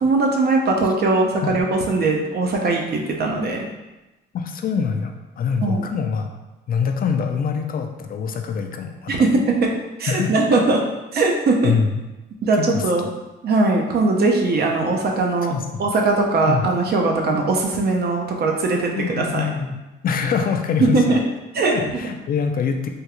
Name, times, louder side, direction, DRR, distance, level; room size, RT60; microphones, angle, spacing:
voice 1, 0.0-3.7 5.6-5.9 9.1-9.7 10.0-10.8 11.1-11.7 12.4-13.1 13.4-15.5 15.8-19.5 20.8-21.2 21.5-21.8, right 3 dB, 55° right, 1 dB, 0.6 m, -20 dB
voice 2, 4.3-6.3 6.7-9.1 10.1-10.3 11.6-11.9 12.6-12.8 15.5-15.8 16.5-16.7 18.9-19.8 20.0-21.2 21.6-22.9, left 6 dB, 45° left, 5 dB, 0.4 m, -24 dB
3.5 x 2.3 x 2.9 m, 1.1 s
cardioid pair, 90°, 20 cm